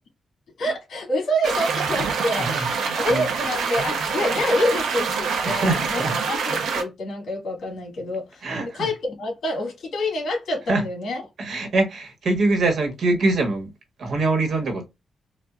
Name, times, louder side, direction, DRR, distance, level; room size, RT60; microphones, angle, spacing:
voice 1, 0.6-8.4 8.7-11.2, left 1 dB, 65° left, 1.7 m, -27 dB
sound 1, 1.4-6.8, right 5 dB, 90° right, 0.8 m, -25 dB
voice 2, 2.4-3.3 5.4-6.2 8.4-8.9 10.7-10.8 11.4-13.7 14.0-14.9, right 2 dB, 55° right, 1.3 m, -24 dB
4.2 x 2.4 x 2.4 m
wide cardioid pair, 145°, 0 cm